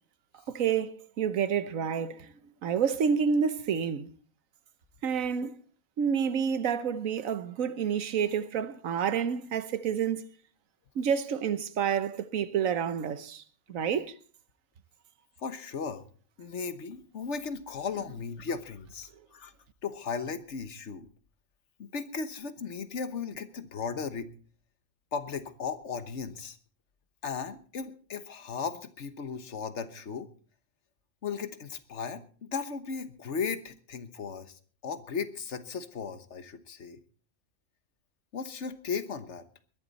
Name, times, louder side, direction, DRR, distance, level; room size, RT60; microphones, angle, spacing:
voice 1, 0.5-4.1 5.0-5.6 6.0-10.2 10.9-13.4 13.7-14.1, right 7 dB, 85° right, 1.3 m, -29 dB
voice 2, 15.4-16.1 16.4-19.5 19.8-21.1 21.8-24.3 25.1-26.6 27.2-30.3 31.2-37.0 38.3-39.4, left 5 dB, 60° left, 1.4 m, -36 dB
21.0 x 11.5 x 4.1 m
omnidirectional pair, 1.4 m